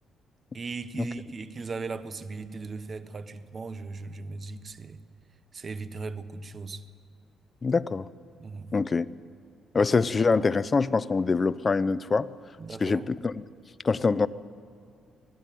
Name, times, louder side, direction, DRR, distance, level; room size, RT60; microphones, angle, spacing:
voice 1, 0.5-5.0 5.5-6.9 8.4-8.7 12.6-13.1, right 4 dB, 40° right, 12 dB, 1.3 m, -38 dB
voice 2, 7.6-8.1 8.7-9.1 9.7-12.3 12.8-13.3 13.8-14.3, left 4 dB, 30° left, 16 dB, 0.7 m, -24 dB
24.5 x 16.5 x 9.3 m, 2.5 s
cardioid pair, 90°, 0 cm